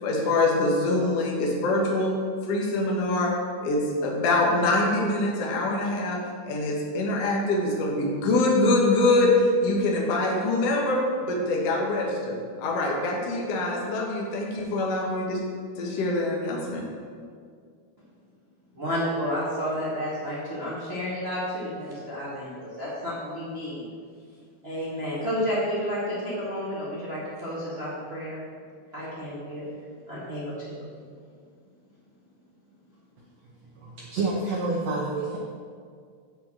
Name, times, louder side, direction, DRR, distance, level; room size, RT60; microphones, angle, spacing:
voice 1, 0.0-2.1 2.5-3.3 3.6-9.3 9.6-12.4 12.6-15.4 15.8-16.8, left 2 dB, 55° left, -1 dB, 2.1 m, -24 dB
voice 2, 18.7-23.9 24.6-28.4 28.9-29.7 30.1-30.8, equal, 30° right, -8 dB, 1.1 m, -31 dB
voice 3, 33.6-35.4, right 3 dB, 75° right, -3 dB, 1.5 m, -29 dB
7.4 x 6.2 x 7.7 m, 2.1 s
omnidirectional pair, 4.3 m